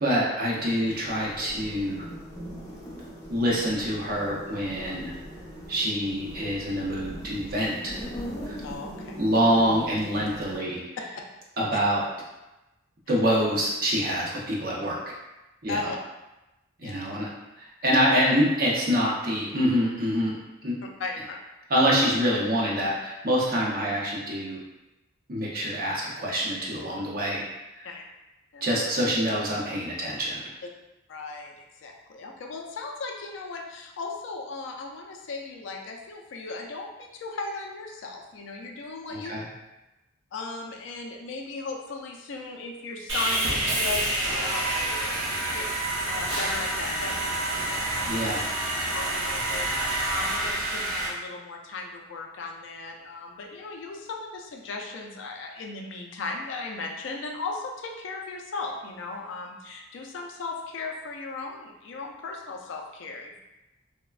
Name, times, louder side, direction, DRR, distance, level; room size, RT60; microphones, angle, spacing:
voice 1, 0.0-2.1 3.3-5.1 5.7-8.0 8.4-8.6 9.2-10.8 11.6-12.0 13.1-15.0 15.6-15.9 16.8-17.3 17.6-20.8 21.7-24.6 25.3-27.4 27.7-27.9 28.6-30.5 39.1-39.4 48.0-48.4, equal, 50° right, -4 dB, 0.6 m, -26 dB
sound 1, 0.6-10.6, equal, 15° left, 0.7 m, -40 dB
voice 2, 8.6-9.2 15.7-16.0 16.8-17.0 21.0-21.4 27.8-28.0 28.5-28.7 31.1-39.3 40.3-45.2 45.5-45.7 46.1-48.2 48.9-63.4, left 3 dB, 65° left, 1 dB, 0.4 m, -37 dB
Sawing, 43.1-51.1, right 1 dB, 85° right, 0.7 m, -28 dB
3.2 x 2.1 x 2.3 m, 1.0 s
head